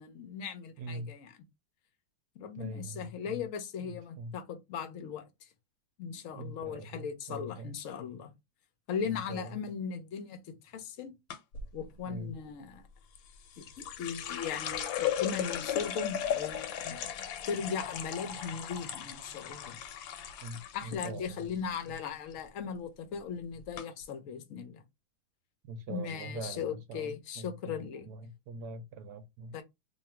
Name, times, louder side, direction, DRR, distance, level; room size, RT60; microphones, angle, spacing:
voice 1, 0.0-1.4 2.4-5.2 6.0-8.3 8.9-11.2 11.7-12.8 13.6-17.0 17.4-19.8 20.7-24.8 25.9-28.1 29.5-29.6, left 6 dB, 65° left, 0.8 m, -38 dB
voice 2, 0.8-1.1 2.6-3.4 3.8-4.3 6.3-7.7 9.0-9.4 12.1-12.3 20.4-21.4 25.7-28.2 28.5-29.6, right 2 dB, 70° right, 1.0 m, -43 dB
sound 1, 11.3-11.7 13.2-21.1 21.4-22.0 22.3-22.7 23.3-23.4 23.8-23.9, left 10 dB, 80° left, 1.4 m, -36 dB
3.0 x 2.4 x 4.3 m
omnidirectional pair, 2.1 m